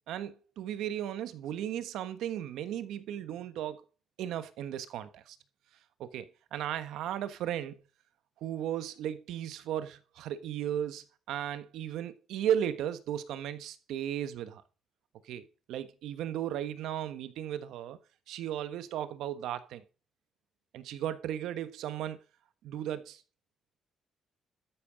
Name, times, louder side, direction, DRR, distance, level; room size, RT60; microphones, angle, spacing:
voice 1, 0.1-3.8 4.2-5.4 6.0-7.8 8.4-14.6 15.2-18.0 18.3-19.8 20.7-22.2 22.6-23.2, right 10 dB, 85° right, 1.3 m, -35 dB
13.0 x 9.2 x 5.2 m
cardioid pair, 90°, 0 cm